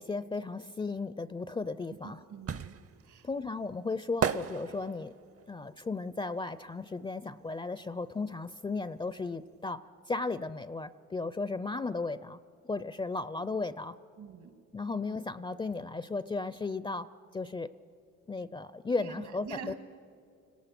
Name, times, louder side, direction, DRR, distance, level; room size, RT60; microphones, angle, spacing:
voice 1, 0.0-2.2 3.2-5.1 5.5-14.0 14.7-17.7 18.3-19.7, left 3 dB, 15° left, 15 dB, 0.4 m, -35 dB
sound 1, 1.6-7.5 7.7-9.3 9.6-9.7, right 8 dB, 50° right, 0.8 m, -36 dB
voice 2, 2.0-3.3 14.2-14.6 19.0-19.7, right 6 dB, 80° right, 8 dB, 2.1 m, -46 dB
29.5 x 18.5 x 5.9 m, 2.5 s
cardioid pair, 90°, 30 cm